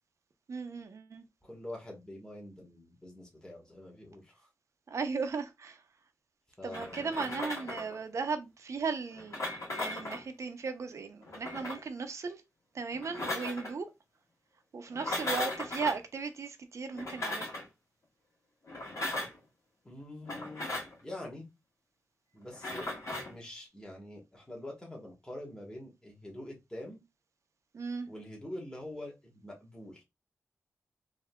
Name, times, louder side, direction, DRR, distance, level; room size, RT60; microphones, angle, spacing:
voice 1, 0.5-1.2 4.9-5.8 6.6-12.4 12.7-13.9 14.7-17.5 27.7-28.1, right 4 dB, 65° right, 0.6 m, -36 dB
voice 2, 1.4-4.5 6.6-7.3 19.8-20.7 21.0-21.5 22.3-22.9 23.3-27.0 28.1-30.0, left 1 dB, 15° left, 1.3 m, -45 dB
sound 1, 6.7-8.0 9.1-10.3 11.2-11.9 12.9-13.7 14.9-16.0 16.9-17.7 18.7-19.4 20.2-21.0 22.5-23.3, left 1 dB, 70° left, 1.5 m, -37 dB
3.6 x 2.7 x 2.2 m
cardioid pair, 70°, 6 cm